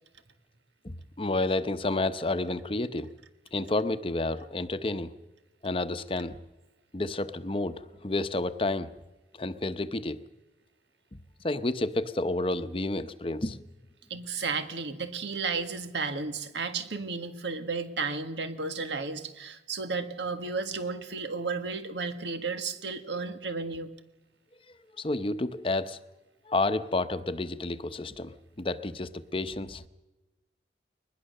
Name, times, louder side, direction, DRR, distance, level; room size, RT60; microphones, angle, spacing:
voice 1, 0.8-3.1 3.5-5.1 5.6-6.4 6.9-8.9 9.3-10.2 11.4-13.6 25.0-26.0 26.5-29.8, left 2 dB, 30° left, 11 dB, 0.8 m, -30 dB
voice 2, 14.1-23.9, right 4 dB, 85° right, 9 dB, 1.7 m, -33 dB
22.0 x 20.5 x 6.6 m, 1.1 s
head